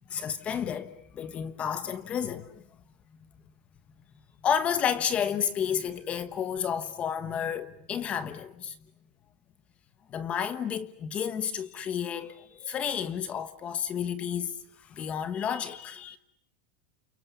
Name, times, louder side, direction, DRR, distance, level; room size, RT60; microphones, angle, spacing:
voice 1, 0.1-2.6 4.4-8.8 10.1-16.2, left 8 dB, 25° left, 1.2 m, -31 dB
29.5 x 29.0 x 6.9 m
supercardioid pair, 155°, 5 cm